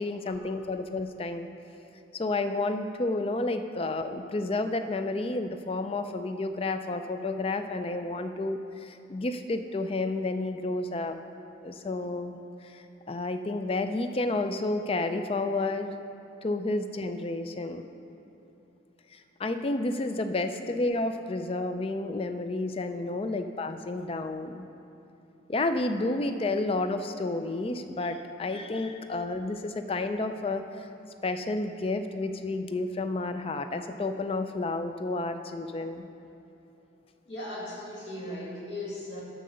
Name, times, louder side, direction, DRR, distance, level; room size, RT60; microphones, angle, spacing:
voice 1, 0.0-1.5 2.1-11.1 11.6-15.9 16.4-17.8 19.1-24.7 25.5-30.9 31.2-36.1, left 2 dB, 30° left, 8 dB, 0.4 m, -31 dB
voice 2, 37.3-39.2, left 1 dB, 60° left, -4 dB, 2.0 m, -38 dB
8.0 x 6.7 x 6.3 m, 2.9 s
head